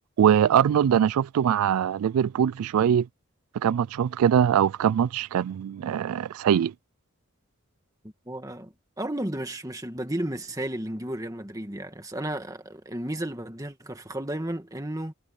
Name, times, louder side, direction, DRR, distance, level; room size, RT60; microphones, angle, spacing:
voice 1, 0.2-3.1 3.5-6.7, right 9 dB, 80° right, 0.3 m, -22 dB
voice 2, 8.3-15.1, right 1 dB, 15° right, 1.8 m, -33 dB
head